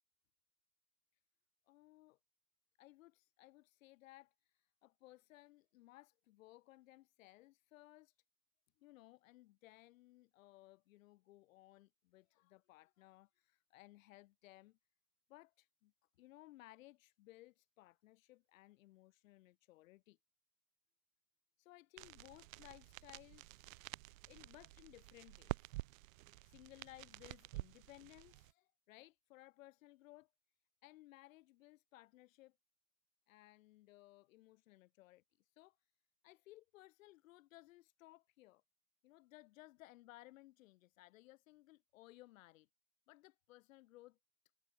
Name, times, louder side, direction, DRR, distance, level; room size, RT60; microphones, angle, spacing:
voice 1, 1.7-2.2 2.8-8.1 8.8-14.8 15.3-15.9 16.2-20.2 21.6-23.7 24.3-25.7 26.4-30.3 30.8-32.5 33.3-35.8 36.2-38.6 39.0-42.7 43.1-44.2, left 17 dB, 80° left, 5.0 m, -61 dB
sound 1, 22.0-28.5, right 20 dB, 90° right, 0.8 m, -50 dB
supercardioid pair, 165°, 39 cm